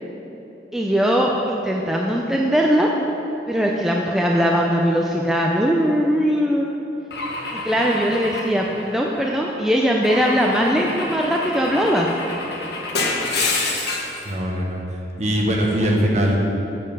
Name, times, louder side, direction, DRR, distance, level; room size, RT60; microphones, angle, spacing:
voice 1, 0.7-2.9 3.5-6.7 7.5-12.1, equal, ahead, -1 dB, 0.4 m, -20 dB
Car / Engine / Glass, 7.1-9.3 10.0-14.2, left 3 dB, 70° left, 1.1 m, -28 dB
voice 2, 14.2-16.4, equal, 40° right, -1 dB, 1.1 m, -21 dB
7.5 x 7.2 x 5.4 m, 3.0 s
head